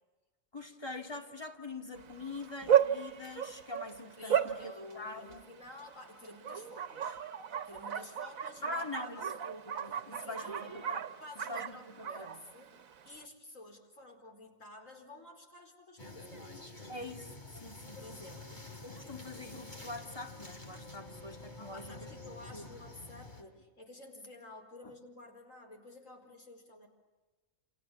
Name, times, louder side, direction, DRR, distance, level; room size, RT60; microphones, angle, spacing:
voice 1, 0.5-5.5 8.6-11.0 11.4-12.4 16.9-18.1 18.8-22.7 24.8-24.9, left 2 dB, 20° left, 2.3 m, -44 dB
Bark, 2.0-13.2, right 9 dB, 80° right, 1.5 m, -35 dB
voice 2, 4.2-9.4 10.1-10.8 11.2-12.8 13.1-16.5 17.9-18.6 21.6-26.9, left 1 dB, 70° left, 4.8 m, -51 dB
sound 1, 16.0-23.4, left 2 dB, 35° left, 3.4 m, -49 dB
29.0 x 28.0 x 7.3 m
omnidirectional pair, 1.4 m